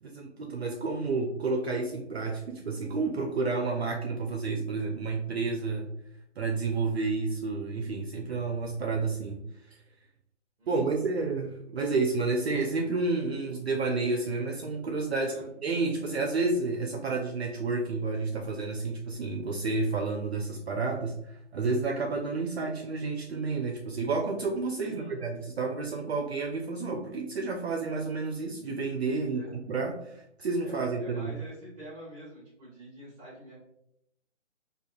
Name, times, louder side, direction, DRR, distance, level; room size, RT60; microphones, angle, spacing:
voice 1, 0.0-5.9 6.4-9.8 10.7-15.3 15.6-31.4, right 3 dB, 55° right, 2 dB, 0.5 m, -30 dB
voice 2, 10.6-11.1 15.1-15.5 24.8-25.2 29.3-29.6 30.6-33.5, equal, 25° right, -6 dB, 0.9 m, -46 dB
4.9 x 2.3 x 2.6 m, 0.76 s
hypercardioid pair, 155°, 38 cm